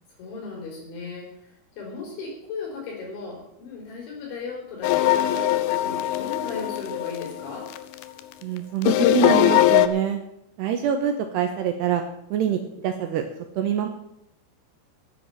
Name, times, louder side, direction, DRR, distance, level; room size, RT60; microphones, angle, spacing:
voice 1, 0.2-7.7, left 4 dB, 75° left, -1 dB, 6.1 m, -36 dB
sound 1, 4.8-8.2 8.8-9.9, left 13 dB, 90° left, 2.1 m, -21 dB
voice 2, 8.4-10.2 10.6-12.0 12.3-13.2 13.6-13.9, right 9 dB, 75° right, 5 dB, 2.8 m, -25 dB
10.0 x 9.3 x 9.2 m, 0.79 s
omnidirectional pair, 5.5 m